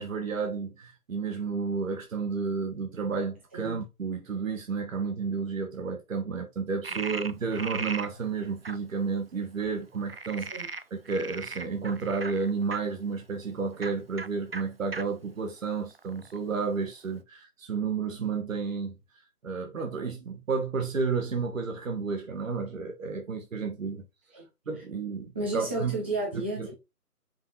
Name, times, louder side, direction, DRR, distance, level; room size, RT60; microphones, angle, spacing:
voice 1, 0.0-19.0 19.4-24.0 24.7-25.9 26.3-26.8, right 5 dB, 60° right, 1.7 m, -31 dB
Frog, 6.8-8.1 8.6-8.8 10.1-12.8 13.7-13.9 14.2-14.3 14.5-14.6 14.9-15.0 15.6-16.4, right 4 dB, 45° right, 0.4 m, -37 dB
voice 2, 25.3-26.7, right 2 dB, 10° right, 0.8 m, -32 dB
5.6 x 4.6 x 4.2 m
figure-of-eight pair, 155°, 45 cm